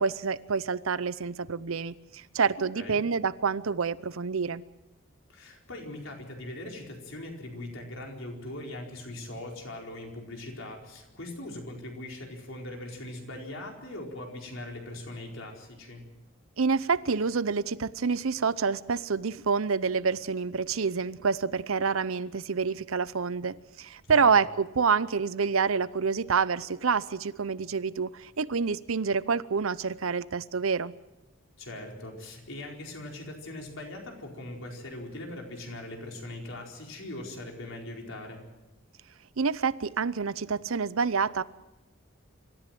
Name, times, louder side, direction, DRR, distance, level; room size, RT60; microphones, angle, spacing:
voice 1, 0.0-4.6 16.6-30.9 39.4-41.4, right 5 dB, 85° right, 17 dB, 0.7 m, -27 dB
voice 2, 5.3-16.0 24.1-24.4 31.6-38.4, left 1 dB, 75° left, 1 dB, 4.6 m, -41 dB
25.5 x 14.0 x 7.7 m, 1.0 s
head